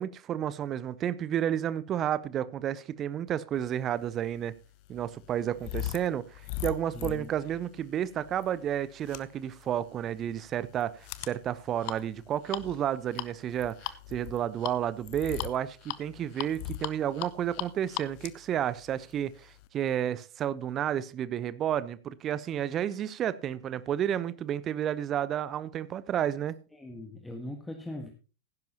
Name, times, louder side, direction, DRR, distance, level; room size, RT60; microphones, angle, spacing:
voice 1, 0.0-4.5 4.9-26.6, right 10 dB, 30° right, 0.7 m, -31 dB
sound 1, 4.0-19.7, left 14 dB, 45° left, 0.7 m, -40 dB
voice 2, 6.9-7.3 26.7-28.1, left 1 dB, 5° left, 1.7 m, -40 dB
16.5 x 10.5 x 2.9 m
figure-of-eight pair, 90°, 0 cm